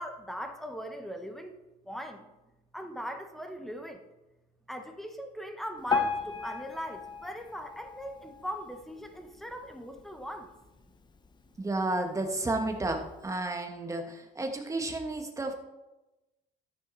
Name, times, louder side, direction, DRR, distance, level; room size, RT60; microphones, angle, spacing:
voice 1, 0.0-1.6 1.8-2.3 2.7-4.1 4.7-10.5, equal, ahead, 5 dB, 1.2 m, -40 dB
Piano, 5.9-9.0 9.5-9.7 10.0-10.1 10.8-10.9 11.5-11.6, left 4 dB, 25° left, 0.9 m, -34 dB
voice 2, 11.6-15.5, right 2 dB, 20° right, 4 dB, 1.5 m, -32 dB
12.5 x 6.6 x 4.1 m, 1.0 s
cardioid pair, 110°, 17 cm